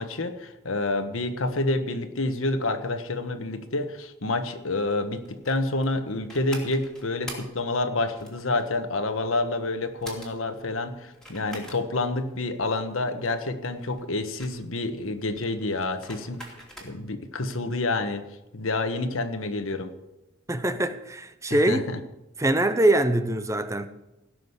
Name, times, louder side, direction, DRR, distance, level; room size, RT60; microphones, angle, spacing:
voice 1, 0.0-16.4 16.8-18.2 18.5-19.9 21.5-22.0, left 2 dB, 90° left, 1.4 m, -28 dB
sound 1, 4.7-17.2, equal, 5° left, 2.8 m, -44 dB
voice 2, 20.5-21.8 22.4-23.9, right 1 dB, 15° right, 0.7 m, -23 dB
16.5 x 6.5 x 8.2 m
head